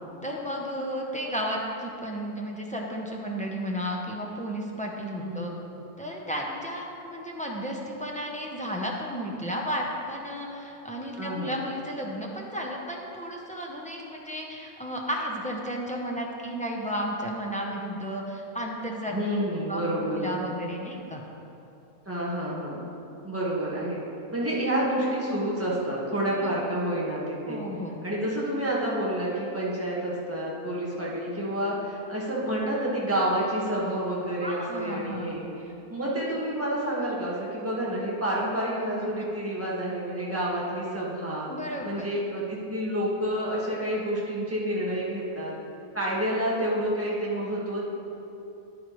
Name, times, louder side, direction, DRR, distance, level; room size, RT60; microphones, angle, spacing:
voice 1, 0.2-5.5 6.0-19.8 20.1-21.2 26.4-26.5 27.5-28.0 34.4-35.3 41.5-42.1, equal, 10° left, -2 dB, 0.4 m, -33 dB
voice 2, 5.2-5.6 11.2-11.6 19.1-20.4 22.0-22.8 23.2-24.0 24.3-27.6 28.0-35.4 35.9-41.5 41.8-45.5 45.9-47.8, right 1 dB, 10° right, -6 dB, 1.5 m, -29 dB
10.0 x 8.8 x 3.1 m, 2.8 s
omnidirectional pair, 1.5 m